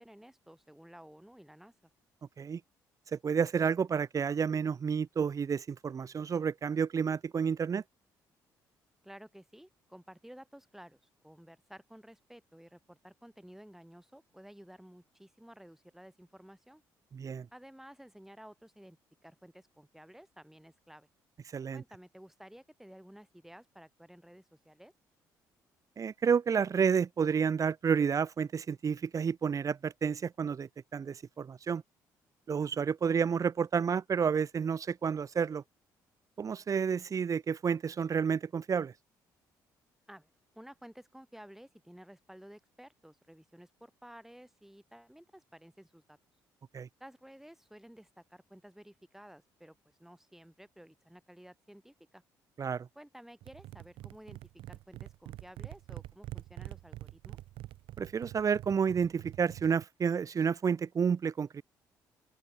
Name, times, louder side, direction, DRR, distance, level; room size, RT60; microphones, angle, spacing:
voice 1, 0.0-1.9 9.0-11.0 11.2-16.8 17.5-19.0 19.2-21.1 21.7-24.9 40.1-46.2 47.0-52.2 52.9-54.4 54.7-57.4, equal, 5° right, 7.3 m, -54 dB
voice 2, 3.1-7.8 17.1-17.5 21.5-21.8 26.0-31.8 32.5-35.6 36.4-38.9 46.7-46.9 52.6-52.9 58.0-61.6, right 6 dB, 35° right, 0.5 m, -30 dB
sound 1, 53.4-59.8, right 15 dB, 70° right, 0.7 m, -46 dB
open air
hypercardioid pair, 55°, 9 cm